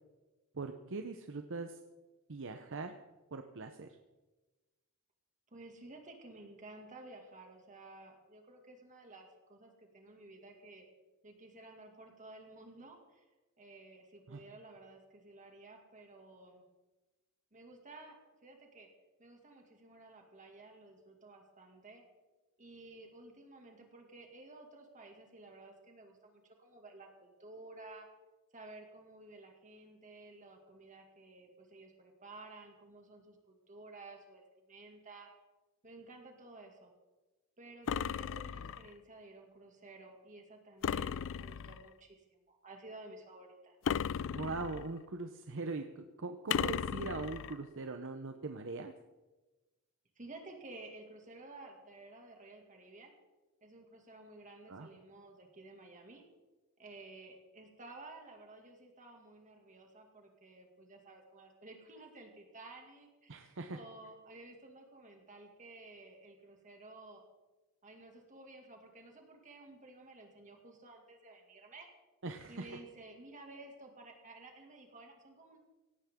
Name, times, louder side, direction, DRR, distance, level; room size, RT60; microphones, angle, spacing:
voice 1, 0.5-1.8 2.3-2.9 3.3-3.9 14.3-14.4 44.3-48.9 54.7-54.9 63.3-63.8 72.2-72.8, right 3 dB, 60° right, 6 dB, 0.9 m, -41 dB
voice 2, 5.5-10.8 11.2-13.3 13.6-16.6 17.5-18.9 19.2-22.0 22.6-28.1 28.5-35.3 35.8-36.9 37.6-43.8 50.2-53.2 53.6-56.2 56.8-67.2 67.8-71.9 72.5-75.6, right 2 dB, 35° right, 2 dB, 2.3 m, -54 dB
sound 1, 37.9-38.9 40.8-41.9 43.8-45.0 46.5-47.6, left 7 dB, 60° left, 0.4 m, -36 dB
17.5 x 16.5 x 3.8 m, 1.2 s
head